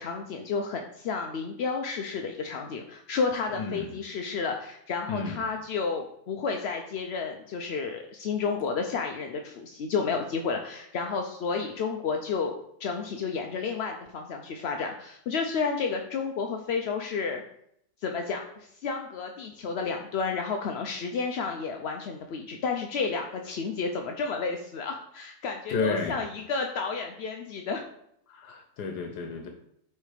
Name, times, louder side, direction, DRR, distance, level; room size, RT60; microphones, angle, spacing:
voice 1, 0.0-17.4 18.0-27.8, left 5 dB, 65° left, 4 dB, 0.6 m, -31 dB
voice 2, 3.5-4.0 5.1-5.4 25.7-26.2 28.3-29.5, left 4 dB, 90° left, 4 dB, 1.4 m, -31 dB
8.2 x 3.3 x 4.9 m, 0.72 s
omnidirectional pair, 1.7 m